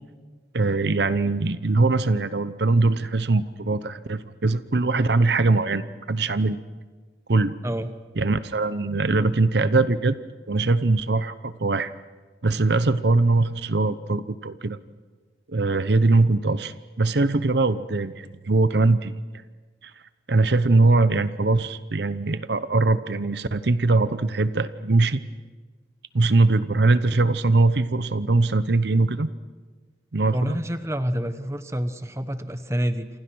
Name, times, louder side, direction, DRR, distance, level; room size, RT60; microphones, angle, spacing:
voice 1, 0.5-6.6 7.3-7.5 8.2-10.2 10.5-11.9 12.4-14.8 15.5-19.2 19.8-19.9 20.3-25.2 26.1-29.3 30.1-30.6, right 3 dB, 65° right, 14 dB, 0.8 m, -21 dB
voice 2, 30.3-33.1, equal, 15° right, 10 dB, 1.1 m, -27 dB
28.5 x 27.0 x 6.2 m, 1.4 s
head